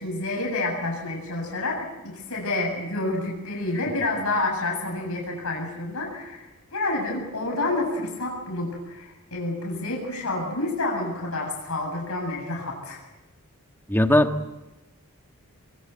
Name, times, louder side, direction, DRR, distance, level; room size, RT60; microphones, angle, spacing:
voice 1, 0.0-13.0, left 2 dB, 70° left, 0 dB, 7.6 m, -29 dB
voice 2, 13.9-14.5, left 1 dB, 10° left, 6 dB, 1.5 m, -20 dB
27.5 x 23.0 x 8.0 m, 1.0 s
head